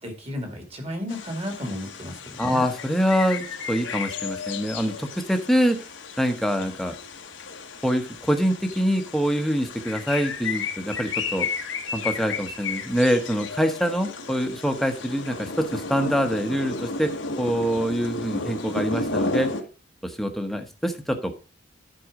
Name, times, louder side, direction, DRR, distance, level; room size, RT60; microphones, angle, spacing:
voice 1, 0.0-2.6, left 1 dB, 30° right, 3 dB, 2.3 m, -33 dB
sound 1, 1.1-19.6, left 4 dB, 90° left, 1.3 m, -33 dB
voice 2, 2.4-5.8 6.2-7.0 7.8-11.5 11.9-19.5 20.0-21.3, equal, ahead, 6 dB, 1.0 m, -25 dB
11.0 x 4.7 x 4.8 m, 0.34 s
head